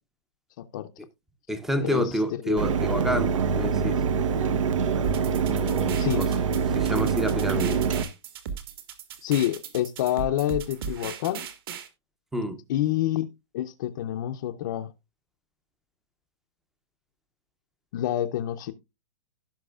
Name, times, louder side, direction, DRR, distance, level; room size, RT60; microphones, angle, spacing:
voice 1, 0.6-0.9 1.8-2.6 6.0-6.2 9.2-11.5 12.7-13.3 13.5-14.9 17.9-18.7, left 12 dB, 40° left, 0.6 m, -27 dB
voice 2, 1.5-4.0 5.5-6.3 6.7-7.8 12.3-12.6, equal, ahead, 0.6 m, -29 dB
Mechanisms, 2.6-8.0, right 6 dB, 85° right, 1.0 m, -25 dB
sound 1, 5.0-11.9, right 7 dB, 50° right, 1.7 m, -37 dB
16.5 x 5.8 x 2.3 m
hypercardioid pair, 170°, 16 cm